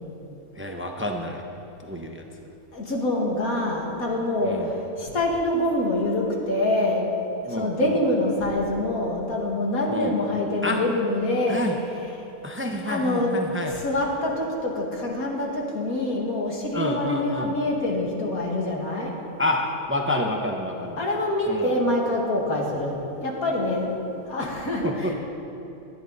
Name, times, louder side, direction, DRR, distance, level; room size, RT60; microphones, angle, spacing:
voice 1, 0.5-1.4 1.8-2.2 4.4-4.7 7.5-8.0 9.9-10.2 10.6-10.8 11.5-11.8 12.4-13.7 16.7-17.5 19.4-21.0 21.5-21.6 24.4-24.5 24.8-25.1, left 1 dB, 10° right, 2 dB, 0.8 m, -28 dB
voice 2, 2.7-7.1 7.4-12.1 12.8-19.1 21.0-25.1, left 1 dB, 85° left, -1 dB, 2.6 m, -25 dB
18.5 x 13.0 x 4.1 m, 2.9 s
omnidirectional pair, 1.5 m